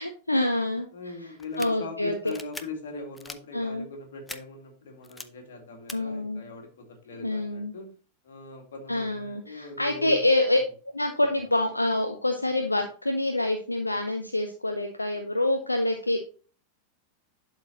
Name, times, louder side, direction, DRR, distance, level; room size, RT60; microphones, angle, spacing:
voice 1, 0.0-0.9 1.2-1.3 1.6-2.1 3.5-3.9 5.9-6.4 7.2-7.7 8.9-10.6 10.9-16.2, left 1 dB, 85° left, 5 dB, 0.7 m, -26 dB
voice 2, 0.9-7.9 8.2-10.3, left 3 dB, 60° left, 3 dB, 2.1 m, -41 dB
sound 1, 1.4-1.7 2.3-2.6 3.1-3.4 4.3-4.4 5.0-5.2 5.9-6.0, left 2 dB, 10° left, 0.5 m, -40 dB
11.5 x 4.5 x 2.9 m, 0.38 s
figure-of-eight pair, 90°, 0 cm